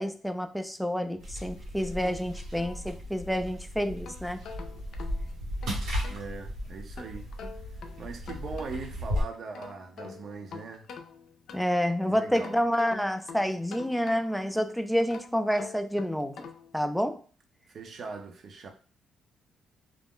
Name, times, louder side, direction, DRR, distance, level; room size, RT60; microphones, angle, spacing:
voice 1, 0.0-4.4 11.5-16.5 16.7-17.2, equal, ahead, 0.3 m, -29 dB
sound 1, 1.2-9.2, equal, 85° right, 1.2 m, -36 dB
sound 2, 2.0-3.4 3.8-6.3 7.0-9.0 9.3-11.9 12.3-14.5 15.0-16.8, left 5 dB, 65° left, 0.4 m, -46 dB
voice 2, 6.1-7.3 8.0-10.9 12.1-12.6 17.7-18.7, right 4 dB, 55° right, 0.6 m, -40 dB
2.4 x 2.1 x 3.6 m
cardioid pair, 90°, 0 cm